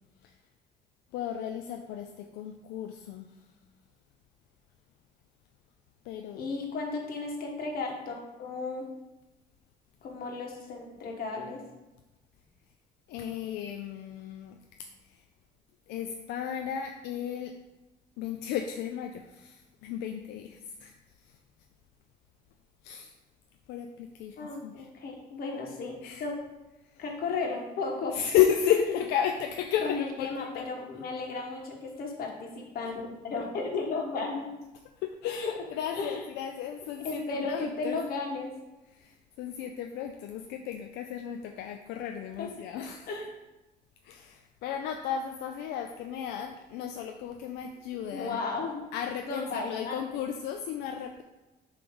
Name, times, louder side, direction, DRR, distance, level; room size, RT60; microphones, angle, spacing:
voice 1, 1.1-3.4 6.0-6.4 13.1-14.6 15.0-15.2 15.9-17.5 18.2-21.4 22.8-23.1 23.7-24.9 26.0-26.3 26.8-27.0 28.1-30.6 35.0-38.0 38.9-43.1 44.0-48.4 48.9-51.2, left 9 dB, 90° left, 5 dB, 0.5 m, -33 dB
voice 2, 6.3-8.8 10.0-11.6 24.4-26.3 27.0-28.2 29.8-34.5 35.9-36.2 37.0-38.5 42.4-42.5 43.1-43.3 48.1-48.7 49.3-50.0, left 3 dB, 60° left, 1 dB, 1.6 m, -34 dB
6.9 x 3.3 x 5.3 m, 1.1 s
cardioid pair, 110°, 17 cm